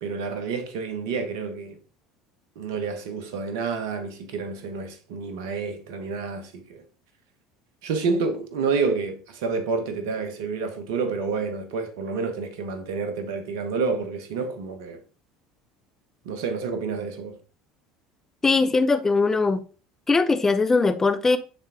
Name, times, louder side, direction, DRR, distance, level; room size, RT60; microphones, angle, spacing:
voice 1, 0.0-1.8 2.6-6.8 7.8-15.0 16.2-17.4, right 4 dB, 70° right, 1.0 m, -29 dB
voice 2, 18.4-19.6 20.1-21.4, left 3 dB, 20° left, 0.8 m, -20 dB
9.3 x 3.5 x 3.4 m
hypercardioid pair, 70°, 2 cm